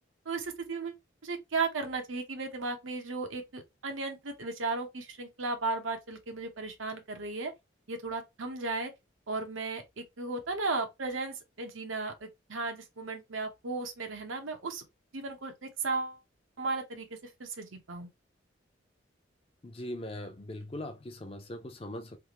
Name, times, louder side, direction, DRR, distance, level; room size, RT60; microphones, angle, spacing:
voice 1, 0.2-1.0 1.2-7.5 7.9-8.9 9.3-14.8 15.1-16.2 16.6-18.1, right 3 dB, 85° right, 0.9 m, -35 dB
voice 2, 19.6-22.2, left 1 dB, 30° left, 0.5 m, -40 dB
3.5 x 2.5 x 2.9 m
head